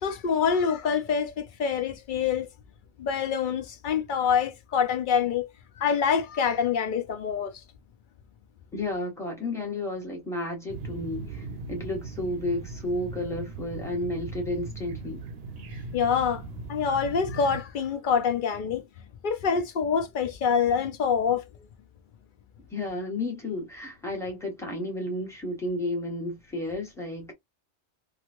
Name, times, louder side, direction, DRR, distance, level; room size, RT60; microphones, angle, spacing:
voice 1, 0.0-2.5 3.0-5.5 5.8-7.5 15.9-16.4 16.7-18.8 19.2-21.4, left 6 dB, 55° left, 0.6 m, -26 dB
voice 2, 8.7-15.2 22.7-27.3, left 1 dB, 5° left, 1.2 m, -32 dB
sound 1, 10.7-17.6, right 3 dB, 65° right, 0.8 m, -39 dB
3.0 x 2.4 x 2.5 m
omnidirectional pair, 1.2 m